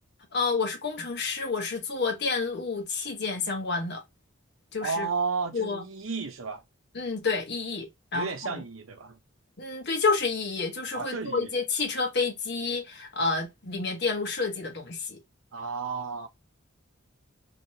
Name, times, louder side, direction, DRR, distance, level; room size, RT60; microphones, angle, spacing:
voice 1, 0.3-4.0 4.7-5.1 5.5-5.8 6.9-8.6 9.6-15.2, left 4 dB, 55° left, 1.2 m, -29 dB
voice 2, 4.8-6.6 8.1-9.2 10.9-11.5 15.5-16.3, right 4 dB, 75° right, 0.7 m, -32 dB
3.2 x 3.0 x 2.8 m
head